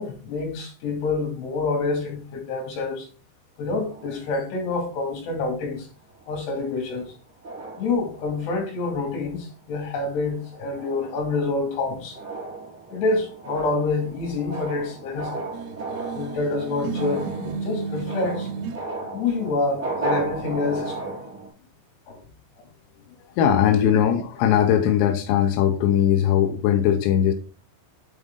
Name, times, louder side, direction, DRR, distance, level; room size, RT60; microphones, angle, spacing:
voice 1, 0.0-3.1 3.6-5.9 6.3-7.1 7.8-12.2 12.9-15.5 16.1-18.5 19.1-21.2 22.1-22.2, left 3 dB, 60° left, 4.0 m, -27 dB
sound 1, 3.6-5.5 6.1-6.3 6.7-7.1 7.4-8.7 9.2-9.5 9.9-21.5, right 3 dB, 25° right, 3.4 m, -35 dB
sound 2, 15.5-18.8, right 5 dB, 90° right, 3.4 m, -32 dB
voice 2, 23.4-27.3, left 9 dB, 80° left, 2.5 m, -19 dB
8.0 x 4.8 x 3.7 m
omnidirectional pair, 5.9 m